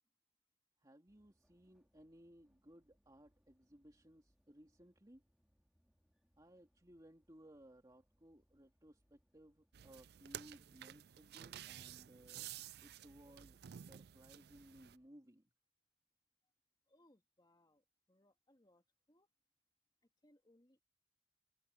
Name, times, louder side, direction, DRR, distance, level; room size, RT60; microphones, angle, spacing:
voice 1, 0.8-5.2 6.4-12.5 12.8-15.5, right 1 dB, 20° right, 2.6 m, -62 dB
sound 1, 1.1-15.1, equal, 5° right, 2.7 m, -80 dB
sound 2, 9.7-15.0, right 11 dB, 60° right, 0.4 m, -52 dB
voice 2, 16.9-19.3 20.0-20.8, left 1 dB, 25° left, 2.1 m, -72 dB
head